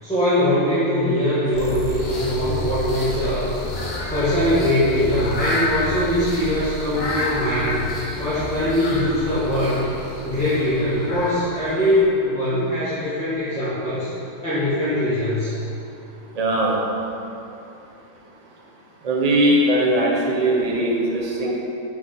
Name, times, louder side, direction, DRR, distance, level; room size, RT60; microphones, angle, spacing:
voice 1, 0.0-3.5 4.1-7.9 8.2-9.8 10.2-14.1 14.4-15.5, left 1 dB, 5° left, -15 dB, 1.3 m, -21 dB
sound 1, 1.5-11.5, equal, 55° left, 1.5 m, -32 dB
sound 2, 2.5-12.0, left 2 dB, 85° left, 1.4 m, -32 dB
voice 2, 16.3-16.8 19.0-21.5, right 1 dB, 35° right, -2 dB, 0.7 m, -20 dB
6.0 x 4.6 x 4.4 m, 2.9 s
omnidirectional pair, 1.6 m